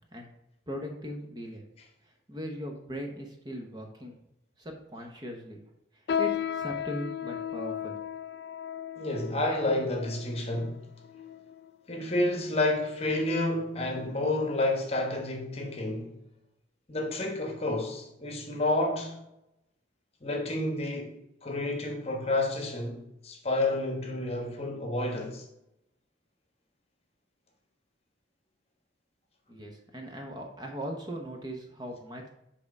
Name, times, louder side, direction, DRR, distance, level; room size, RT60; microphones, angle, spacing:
voice 1, 0.7-1.6 2.0-4.2 4.6-5.6 5.9-7.9 29.5-32.3, equal, 20° right, 0.9 m, -39 dB
sound 1, 6.1-11.8 12.4-12.6 13.3-13.6 14.0-14.2 14.9-15.0, left 9 dB, 55° left, 0.3 m, -35 dB
voice 2, 9.0-10.8 11.9-16.1 16.9-19.2 20.2-21.1 21.4-25.5, left 2 dB, 30° left, 1.1 m, -30 dB
7.7 x 3.6 x 5.3 m
head